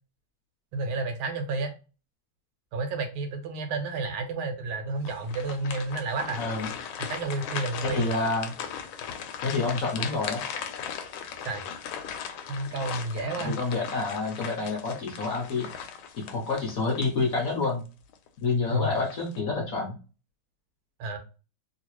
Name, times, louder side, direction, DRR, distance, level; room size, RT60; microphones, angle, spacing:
voice 1, 0.7-1.7 2.7-6.4 7.0-8.1 11.4-11.6 12.5-13.6 18.7-18.9 21.0-21.2, right 3 dB, 85° right, 5 dB, 1.6 m, -31 dB
sound 1, 5.0-17.7 18.1-18.3 18.9-19.4, left 7 dB, 80° left, 1.4 m, -38 dB
voice 2, 6.4-6.7 7.8-8.5 9.4-10.4 13.4-15.7 16.2-17.8 18.4-19.9, left 3 dB, 60° left, -1 dB, 0.9 m, -28 dB
3.2 x 2.8 x 2.9 m, 0.33 s
omnidirectional pair, 2.3 m